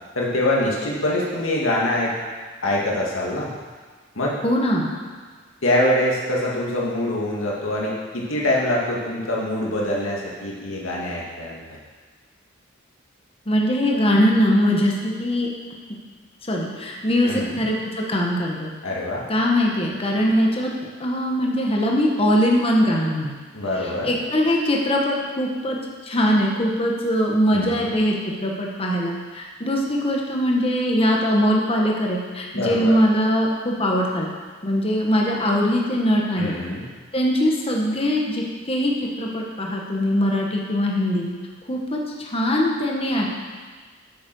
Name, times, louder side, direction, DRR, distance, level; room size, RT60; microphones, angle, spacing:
voice 1, 0.1-2.1 2.6-3.5 4.2-4.4 5.6-11.6 17.2-17.6 18.8-19.2 20.2-20.3 23.5-24.1 27.5-27.9 32.5-33.0 36.4-36.8, left 1 dB, 90° left, -4 dB, 2.3 m, -24 dB
voice 2, 4.4-4.9 13.5-15.5 16.5-18.7 19.3-20.7 21.0-23.3 23.8-25.8 26.0-34.3 34.6-36.5 37.1-38.9 39.2-41.2 41.7-43.4, equal, 30° left, -1 dB, 1.3 m, -21 dB
8.5 x 7.6 x 6.2 m, 1.5 s
head